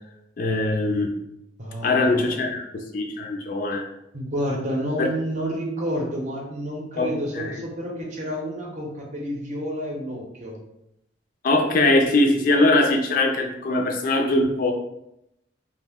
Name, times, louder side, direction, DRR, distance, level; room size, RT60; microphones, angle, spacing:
voice 1, 0.4-1.1 1.8-3.8 5.0-5.1 7.0-7.1 7.3-7.6 11.4-14.7, left 2 dB, 45° left, 3 dB, 0.3 m, -21 dB
voice 2, 1.6-2.4 4.1-10.6, equal, 40° right, -1 dB, 0.6 m, -30 dB
2.5 x 2.0 x 3.5 m, 0.82 s
head